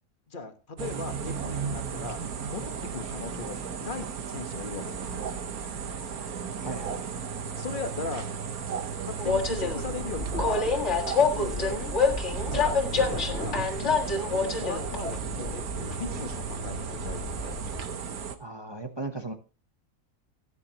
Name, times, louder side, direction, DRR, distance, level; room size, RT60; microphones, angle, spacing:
voice 1, 0.3-2.2 2.5-5.3 7.6-8.3 9.0-10.7 11.2-11.8 12.5-17.5, left 4 dB, 35° left, 6 dB, 1.5 m, -38 dB
sound 1, 0.8-18.4, right 6 dB, 85° right, 1.6 m, -35 dB
voice 2, 6.6-7.2 12.5-12.6 18.4-19.3, right 2 dB, 20° right, 5 dB, 0.9 m, -37 dB
Train, 9.2-17.8, left 4 dB, 55° left, 2.2 m, -28 dB
16.5 x 9.7 x 2.9 m, 0.35 s
omnidirectional pair, 1.5 m